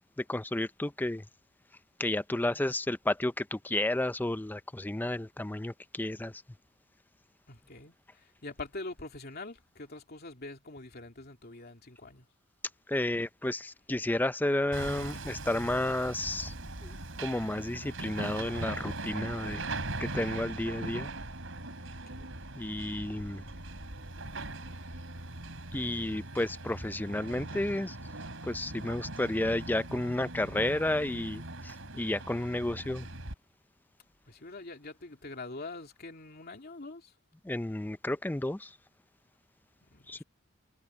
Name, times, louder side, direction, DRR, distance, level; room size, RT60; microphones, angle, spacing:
voice 1, 0.2-1.2 2.0-6.4 12.9-16.5 16.8-16.9 17.2-19.6 20.0-21.1 22.6-23.4 25.7-28.0 28.4-33.1 37.4-38.7 40.1-40.2, left 1 dB, 10° left, 0.5 m, -32 dB
voice 2, 7.5-12.3 21.9-22.3 34.3-37.1 39.9-40.2, left 2 dB, 50° left, 2.8 m, -44 dB
Hammer, 14.7-33.3, right 2 dB, 70° right, 5.4 m, -40 dB
head